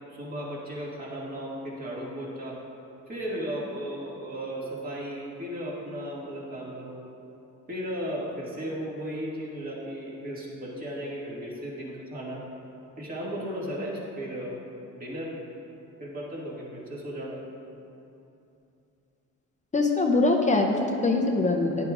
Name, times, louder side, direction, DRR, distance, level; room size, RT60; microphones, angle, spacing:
voice 1, 0.1-2.6 3.1-7.0 7.7-12.4 13.0-14.6 14.9-15.4 16.0-17.4, equal, 25° right, -5 dB, 2.2 m, -35 dB
voice 2, 19.7-21.9, left 3 dB, 25° left, 1 dB, 0.7 m, -23 dB
13.5 x 10.5 x 2.5 m, 2.8 s
cardioid pair, 120°, 32 cm